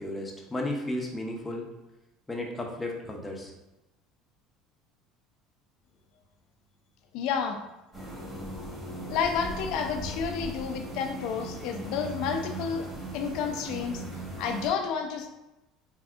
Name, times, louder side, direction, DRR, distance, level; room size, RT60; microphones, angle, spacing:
voice 1, 0.0-1.6 2.3-3.5, left 1 dB, 15° left, 0 dB, 0.6 m, -34 dB
voice 2, 7.1-7.6 9.0-12.9 13.1-14.0 14.4-15.3, left 6 dB, 70° left, 5 dB, 0.4 m, -30 dB
sound 1, 7.9-14.7, right 1 dB, 5° right, 1.2 m, -38 dB
3.4 x 2.6 x 2.4 m, 0.97 s
supercardioid pair, 115°, 0 cm